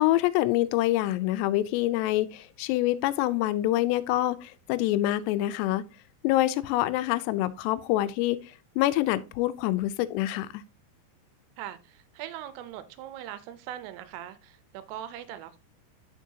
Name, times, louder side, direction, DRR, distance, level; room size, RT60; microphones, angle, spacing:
voice 1, 0.0-5.8 6.2-8.4 8.8-10.6, left 15 dB, 90° left, 2.7 m, -26 dB
voice 2, 11.6-15.6, right 11 dB, 80° right, 2.7 m, -41 dB
7.4 x 6.2 x 2.7 m
omnidirectional pair, 4.8 m